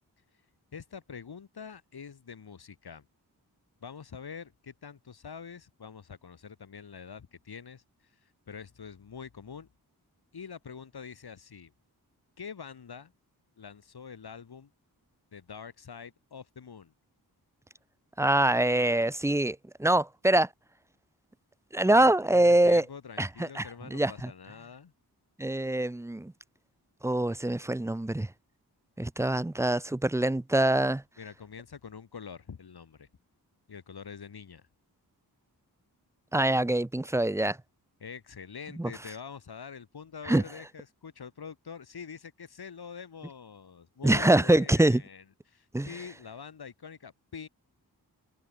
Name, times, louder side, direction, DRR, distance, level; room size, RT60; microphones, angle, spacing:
voice 1, 0.7-3.0 3.8-9.7 10.3-11.7 12.4-13.1 13.6-14.7 15.3-16.9 22.0-24.9 31.2-33.1 33.7-34.6 38.0-47.5, left 6 dB, 75° left, 6.3 m, -45 dB
voice 2, 18.2-20.5 21.7-22.8 23.2-23.7 23.9-24.3 25.4-26.3 27.0-28.3 29.0-31.0 36.3-37.6 38.8-38.9 40.3-40.4 44.0-45.0 45.7-45.9, right 1 dB, 5° right, 0.5 m, -24 dB
wide cardioid pair, 115°, 38 cm